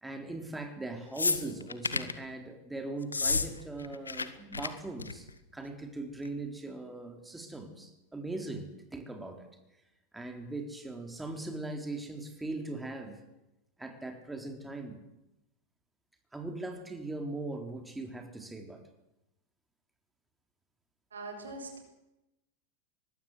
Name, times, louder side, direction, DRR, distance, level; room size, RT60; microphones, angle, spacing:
voice 1, 0.0-9.5 10.1-13.2 13.8-15.0 16.3-18.8, right 2 dB, 10° right, 5 dB, 4.1 m, -40 dB
sound 1, 1.2-2.2 3.0-3.5 3.7-4.3 4.5-4.7 5.0-5.3 6.2-6.3, left 4 dB, 85° left, 1.7 m, -30 dB
voice 2, 21.1-21.8, right 2 dB, 80° right, 3 dB, 7.6 m, -42 dB
23.5 x 20.5 x 8.3 m, 0.92 s
figure-of-eight pair, 90°, 0 cm